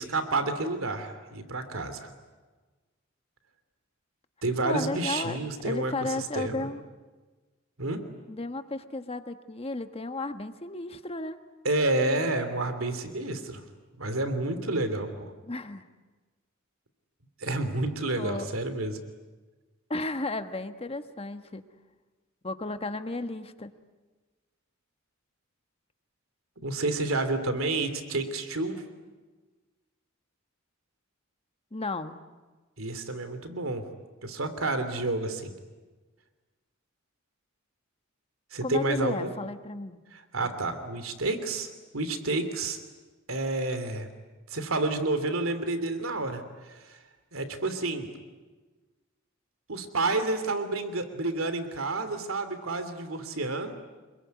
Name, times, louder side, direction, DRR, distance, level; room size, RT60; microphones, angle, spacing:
voice 1, 0.0-2.1 4.4-6.7 7.8-8.0 11.6-13.6 14.0-15.3 17.4-19.0 26.6-28.8 32.8-33.8 34.2-35.5 38.5-39.3 40.1-42.8 43.3-44.1 44.5-47.0 47.3-48.1 49.7-53.8, right 2 dB, 85° right, 9 dB, 3.1 m, -30 dB
voice 2, 4.6-5.4 5.6-6.8 8.3-11.4 15.5-15.8 18.2-18.5 19.9-21.6 22.4-23.7 31.7-32.2 38.6-40.0, left 2 dB, 30° left, 9 dB, 1.4 m, -33 dB
27.0 x 22.5 x 9.5 m, 1.3 s
head